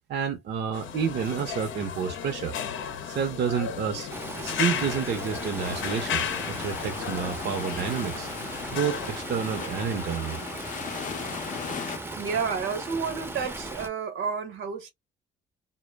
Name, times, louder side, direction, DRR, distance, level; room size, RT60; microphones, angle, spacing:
voice 1, 0.1-2.5 3.1-4.1 4.4-8.3 8.7-10.4, right 7 dB, 55° right, 0.6 m, -29 dB
sound 1, 0.7-9.1, left 8 dB, 80° left, 0.6 m, -34 dB
Stream, 4.1-13.9, right 2 dB, 10° right, 0.5 m, -37 dB
sound 2, 5.6-12.0, left 7 dB, 40° left, 0.5 m, -38 dB
voice 2, 12.1-14.9, right 5 dB, 80° right, 0.9 m, -30 dB
2.0 x 2.0 x 3.2 m
cardioid pair, 90°, 20 cm